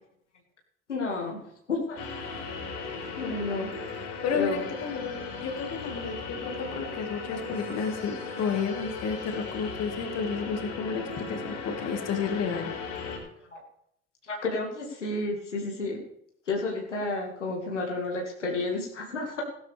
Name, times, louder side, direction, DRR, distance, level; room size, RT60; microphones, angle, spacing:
voice 1, 0.9-1.4 1.7-2.0 3.2-3.7 4.3-4.6 13.5-13.6 14.2-16.0 16.5-19.4, left 3 dB, 85° left, -1 dB, 2.2 m, -31 dB
sound 1, 2.0-13.2, left 4 dB, 65° left, 4.9 m, -37 dB
voice 2, 4.0-12.7, left 5 dB, 45° left, 5 dB, 2.2 m, -32 dB
17.0 x 11.5 x 3.5 m, 0.73 s
figure-of-eight pair, 60°, 35 cm